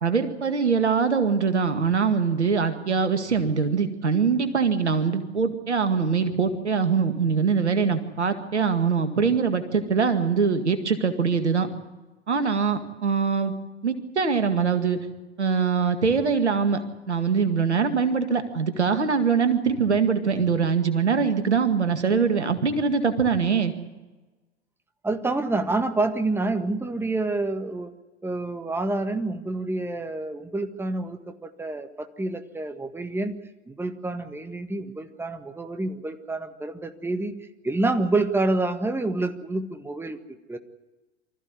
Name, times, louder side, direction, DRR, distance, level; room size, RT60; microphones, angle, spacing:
voice 1, 0.0-11.7 12.3-13.5 13.8-15.0 15.4-16.8 17.1-23.7, right 5 dB, 80° right, 9 dB, 2.1 m, -23 dB
voice 2, 25.0-27.9 28.2-33.4 33.7-37.4 37.6-40.2 40.5-40.6, right 2 dB, 5° right, 8 dB, 1.7 m, -28 dB
25.0 x 14.5 x 9.7 m, 1.2 s
figure-of-eight pair, 80°, 34 cm